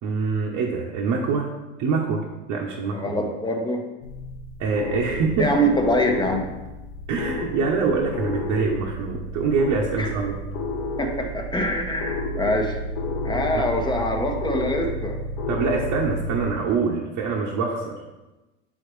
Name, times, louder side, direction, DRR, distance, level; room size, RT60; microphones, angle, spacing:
voice 1, 0.0-1.5 1.8-3.0 4.6-5.7 7.1-10.4 13.5-13.7 15.5-18.0, right 4 dB, 55° right, -2 dB, 1.0 m, -25 dB
voice 2, 2.9-3.8 5.4-6.5 10.0-10.1 11.0-12.8 13.2-15.2, equal, 10° left, 3 dB, 1.1 m, -24 dB
sound 1, 4.0-16.5, left 1 dB, 65° left, 0.9 m, -31 dB
7.7 x 4.0 x 3.2 m, 1.1 s
hypercardioid pair, 85°, 36 cm